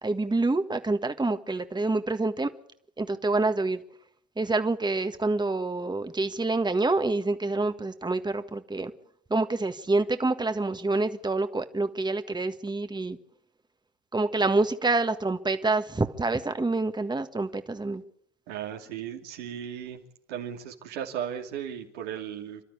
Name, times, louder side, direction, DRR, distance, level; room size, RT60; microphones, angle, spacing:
voice 1, 0.0-2.5 3.0-3.8 4.4-8.9 9.3-13.2 14.1-18.0, right 3 dB, 10° right, 1.7 m, -27 dB
voice 2, 18.5-20.0 20.3-22.6, right 9 dB, 80° right, 2.8 m, -36 dB
30.0 x 12.5 x 8.5 m
hypercardioid pair, 60°, 35 cm